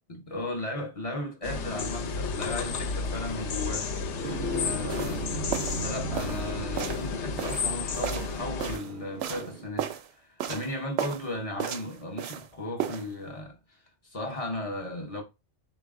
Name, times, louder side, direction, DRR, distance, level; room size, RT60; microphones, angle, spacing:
voice 1, 0.1-3.9 4.5-5.3 5.8-15.2, left 1 dB, 40° left, 0.7 m, -36 dB
sound 1, 1.4-8.8, left 4 dB, 80° left, 0.9 m, -32 dB
sound 2, 4.2-9.7, right 5 dB, 60° right, 0.6 m, -41 dB
sound 3, 4.9-5.2 5.5-5.8 6.1-6.4 6.8-7.1 7.4-8.9 9.2-9.5 9.8-10.1 10.4-10.7 11.0-11.3 11.6-12.5 12.8-13.1, right 9 dB, 90° right, 0.9 m, -34 dB
4.0 x 2.4 x 3.5 m
omnidirectional pair, 1.2 m